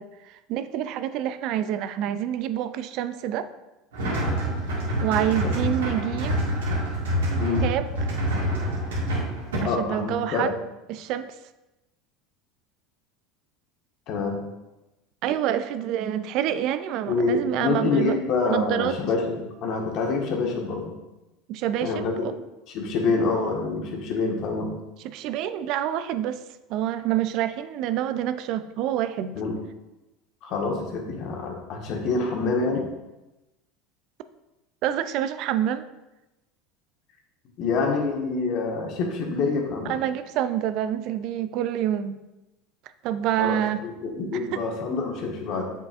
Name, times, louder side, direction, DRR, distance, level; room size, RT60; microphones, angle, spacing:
voice 1, 0.0-3.5 5.0-6.4 7.6-8.1 9.6-10.5 10.9-11.3 15.2-18.2 18.5-19.0 21.5-22.3 25.0-26.4 26.7-29.4 34.8-35.9 39.8-42.2 43.0-43.8 44.3-44.6, right 11 dB, 55° right, 12 dB, 0.4 m, -27 dB
sound 1, 3.9-9.6, equal, 80° right, 1.9 m, -26 dB
voice 2, 9.6-10.5 14.1-14.4 17.1-20.9 21.8-22.3 22.7-24.7 29.3-29.5 30.4-32.9 37.6-40.0 43.4-45.7, left 4 dB, 55° left, 1 dB, 1.4 m, -26 dB
7.5 x 5.5 x 2.5 m, 1.0 s
hypercardioid pair, 80°, 0 cm